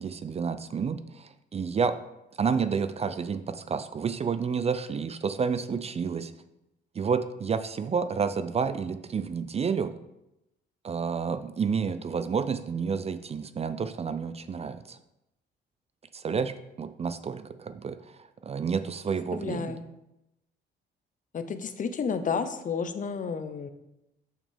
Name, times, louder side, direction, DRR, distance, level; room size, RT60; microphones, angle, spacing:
voice 1, 0.0-2.0 2.4-6.3 7.0-9.9 10.8-15.0 16.1-19.8, right 6 dB, 30° right, 11 dB, 0.4 m, -30 dB
voice 2, 19.3-19.8 21.3-23.7, left 6 dB, 40° left, 9 dB, 0.7 m, -31 dB
6.5 x 6.0 x 3.4 m, 0.89 s
cardioid pair, 90°, 20 cm